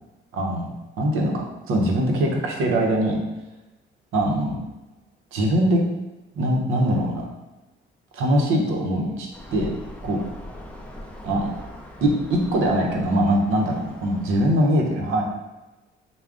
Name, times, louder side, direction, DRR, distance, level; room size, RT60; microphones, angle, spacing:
voice 1, 0.3-0.7 1.0-3.2 4.1-4.6 5.3-5.8 6.3-7.3 8.1-9.7 10.0-10.2 11.2-11.5 12.0-15.2, right 1 dB, 85° right, 1 dB, 0.7 m, -22 dB
sound 1, 9.3-14.6, left 1 dB, 5° left, 0.4 m, -41 dB
3.6 x 2.1 x 3.6 m, 1.1 s
cardioid pair, 120°, 21 cm